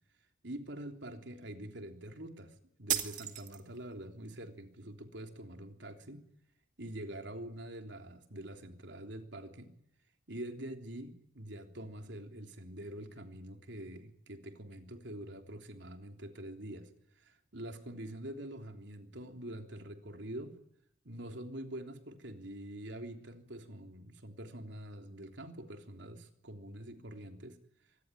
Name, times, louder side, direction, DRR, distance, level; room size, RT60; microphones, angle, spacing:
voice 1, 0.4-6.2 6.8-9.7 10.3-16.9 17.2-20.6 21.0-27.6, right 1 dB, 70° right, 5 dB, 3.4 m, -45 dB
sound 1, 2.9-3.9, right 10 dB, 40° right, 2.3 m, -35 dB
25.5 x 20.5 x 9.9 m, 0.76 s
head